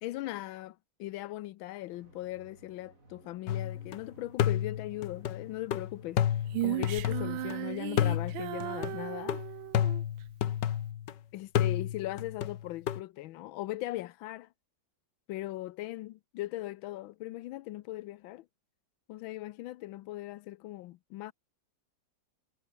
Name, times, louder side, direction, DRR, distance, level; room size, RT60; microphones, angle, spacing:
voice 1, 0.0-9.4 11.3-14.5 15.3-18.4 19.1-21.3, left 16 dB, 85° left, 1.4 m, -39 dB
sound 1, 1.9-9.4, right 2 dB, 40° right, 6.4 m, -58 dB
sound 2, 3.5-4.0 4.4-7.6 8.0-11.1 11.6-13.0, left 10 dB, 65° left, 1.7 m, -31 dB
Female singing, 6.5-10.0, right 16 dB, 80° right, 1.4 m, -36 dB
omnidirectional pair, 2.1 m